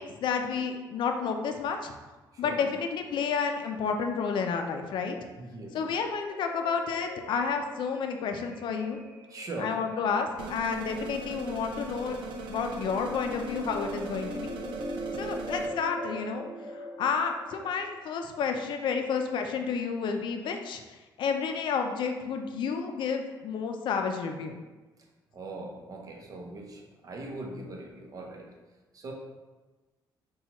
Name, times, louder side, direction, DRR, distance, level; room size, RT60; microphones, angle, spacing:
voice 1, 0.0-1.9 2.4-5.2 5.7-9.0 9.6-12.2 12.5-14.5 15.1-16.4 16.7-24.6, left 5 dB, 70° left, 5 dB, 0.4 m, -30 dB
voice 2, 2.3-2.7 5.4-5.8 9.3-9.9 15.2-15.3 25.3-28.5 28.9-29.1, right 2 dB, 45° right, 1 dB, 0.7 m, -40 dB
sound 1, 6.3-17.7, equal, 10° left, 0.5 m, -41 dB
sound 2, 10.4-15.7, right 3 dB, 85° right, 0.4 m, -40 dB
5.6 x 2.3 x 2.9 m, 1.2 s
cardioid pair, 110°, 8 cm